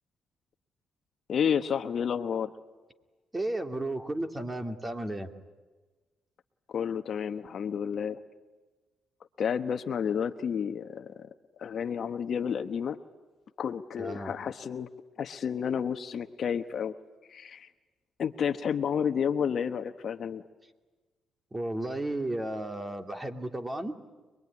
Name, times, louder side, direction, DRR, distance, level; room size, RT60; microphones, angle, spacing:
voice 1, 1.3-2.5 6.7-8.2 9.4-11.3 11.6-13.0 13.6-14.9 15.2-16.9 17.3-17.7 18.2-20.4, left 7 dB, 55° left, 10 dB, 1.1 m, -30 dB
voice 2, 3.3-5.3 14.0-14.3 21.5-24.0, right 1 dB, 15° right, 6 dB, 2.5 m, -33 dB
25.5 x 22.0 x 9.7 m, 1.3 s
cardioid pair, 90°, 0 cm